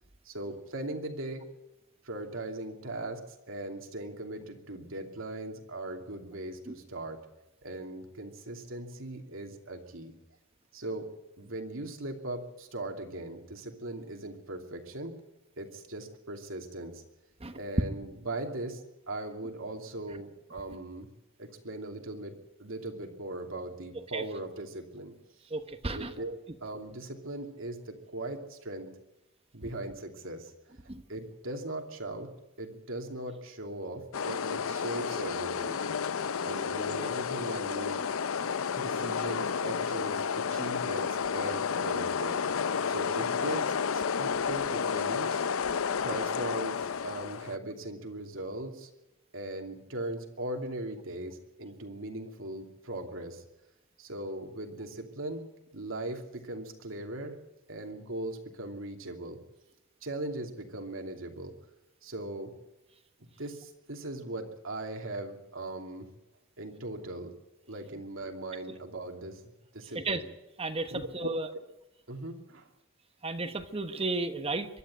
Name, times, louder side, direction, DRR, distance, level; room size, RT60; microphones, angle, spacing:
voice 1, 0.2-1.5 2.0-7.2 7.6-10.1 10.7-11.1 11.4-15.2 15.6-17.0 17.5-18.8 19.1-21.1 21.4-25.1 25.9-28.9 29.5-30.5 31.1-32.3 32.6-35.8 36.4-38.0 38.8-42.4 42.9-45.4 46.0-48.9 49.3-53.4 54.0-55.5 55.7-57.4 57.7-59.4 60.0-61.5 62.0-62.5 63.4-66.1 66.6-67.3 67.7-69.4 69.7-70.2 70.9-71.3 72.1-72.7, right 1 dB, 75° right, 4 dB, 2.8 m, -39 dB
voice 2, 25.5-26.1 30.9-31.0 69.9-70.2 70.6-71.5 73.2-74.7, right 3 dB, 30° right, 8 dB, 1.2 m, -33 dB
sound 1, 34.1-47.6, left 6 dB, 85° left, 0.6 m, -31 dB
23.5 x 12.0 x 9.2 m, 0.96 s
head